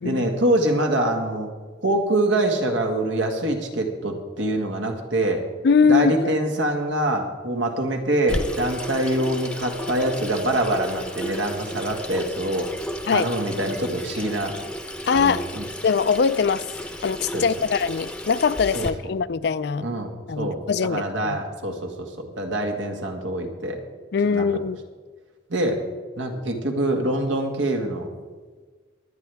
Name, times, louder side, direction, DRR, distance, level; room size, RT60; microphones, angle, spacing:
voice 1, 0.0-1.5 1.8-5.4 5.8-12.7 13.1-14.5 15.1-15.6 17.3-17.4 18.7-18.9 19.8-20.1 20.4-23.8 24.3-24.5 25.5-25.8 26.2-28.1, right 1 dB, 90° right, 2 dB, 1.8 m, -25 dB
voice 2, 5.6-6.3 13.1-13.3 15.1-15.5 15.8-16.7 17.0-19.9 20.3-21.4 24.1-24.8, left 5 dB, 60° left, 16 dB, 0.4 m, -22 dB
Water tap faucet / Sink (filling or washing), 8.3-18.9, equal, 5° left, 0.7 m, -33 dB
23.5 x 9.4 x 3.5 m, 1.4 s
head